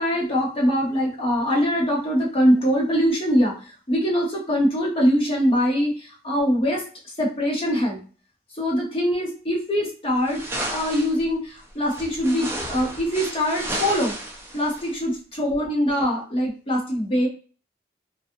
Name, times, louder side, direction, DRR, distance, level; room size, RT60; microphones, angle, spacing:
voice 1, 0.0-6.8 7.2-8.0 8.5-14.1 14.5-17.3, equal, 35° left, -2 dB, 0.9 m, -23 dB
sound 1, 10.3-11.2 11.9-14.9, right 1 dB, 15° right, 0.5 m, -32 dB
2.5 x 2.3 x 2.6 m, 0.38 s
head